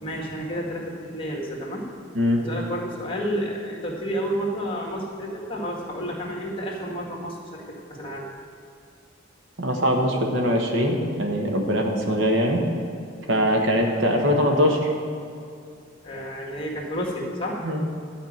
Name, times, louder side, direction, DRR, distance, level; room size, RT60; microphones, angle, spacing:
voice 1, 0.0-1.8 2.4-7.6 7.9-8.3 16.0-17.6, equal, 25° left, -2 dB, 1.8 m, -30 dB
voice 2, 9.6-12.6 13.3-14.9 17.6-17.9, equal, 70° right, 2 dB, 1.4 m, -22 dB
12.0 x 5.1 x 8.7 m, 2.5 s
head